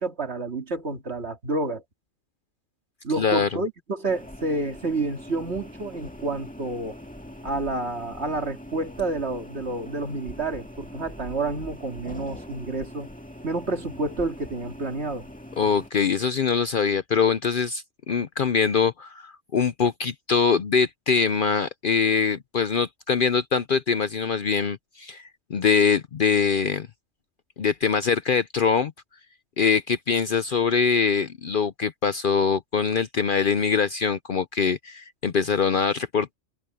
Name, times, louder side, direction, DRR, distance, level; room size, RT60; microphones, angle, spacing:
voice 1, 0.0-1.8 3.0-7.0 7.4-13.1 13.4-15.3, right 2 dB, 60° right, 2.6 m, -29 dB
voice 2, 3.1-3.6 15.6-26.9 27.6-28.9 29.6-36.3, left 6 dB, 50° left, 0.7 m, -23 dB
sound 1, 4.1-15.9, left 1 dB, 5° left, 2.0 m, -42 dB
omnidirectional pair, 1.3 m